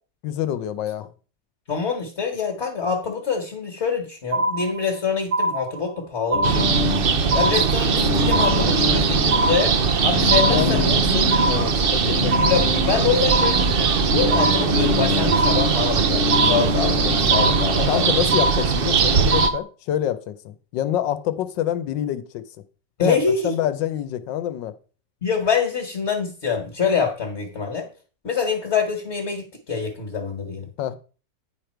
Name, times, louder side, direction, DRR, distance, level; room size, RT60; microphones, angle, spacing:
voice 1, 0.2-1.1 10.4-12.3 17.9-22.4 23.0-24.7 30.8-31.0, left 11 dB, 85° left, 1.4 m, -26 dB
voice 2, 1.7-6.7 7.3-9.8 10.0-11.0 12.5-18.1 23.0-23.5 25.2-27.9 28.2-30.7, left 5 dB, 40° left, 1.7 m, -25 dB
sound 1, 4.3-5.0 5.3-6.0 6.3-7.0 7.3-8.0 8.3-9.0 9.3-10.0 10.3-11.0 11.3-12.0 12.3-13.0 13.3-14.0 14.3-15.0 15.3-16.0 16.3-17.0 17.3-18.0 18.3-19.0 19.3-19.6, right 1 dB, 45° right, 1.3 m, -24 dB
sound 2, 6.3-18.1, left 8 dB, 65° left, 0.7 m, -29 dB
sound 3, 6.4-19.5, right 6 dB, 70° right, 0.5 m, -20 dB
9.4 x 5.1 x 4.5 m
omnidirectional pair, 1.9 m